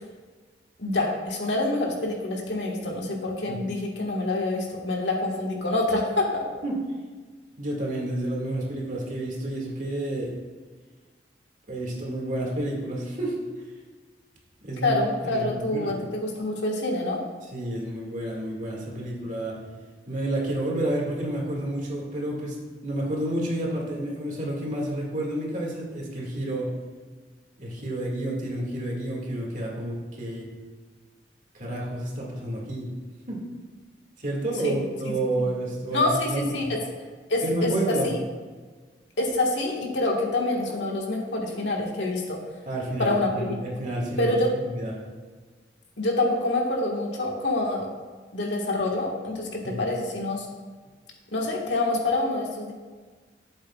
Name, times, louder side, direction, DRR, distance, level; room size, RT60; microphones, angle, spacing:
voice 1, 0.8-6.4 14.8-17.2 34.6-34.8 35.0-35.1 35.4-35.5 35.9-36.8 37.3-38.2 39.2-42.4 43.0-43.5 44.2-44.6 46.0-47.9 48.3-50.5 51.3-52.7, left 2 dB, 85° left, -1 dB, 1.7 m, -26 dB
voice 2, 7.6-10.3 11.7-13.4 14.6-15.9 17.5-19.6 20.1-22.6 22.8-26.7 27.6-30.5 31.5-32.9 33.3-33.4 34.2-36.7 37.4-38.1 42.7-44.3 44.7-44.9 49.6-49.8, right 1 dB, 45° right, -2 dB, 2.1 m, -30 dB
12.0 x 7.9 x 2.4 m, 1.4 s
head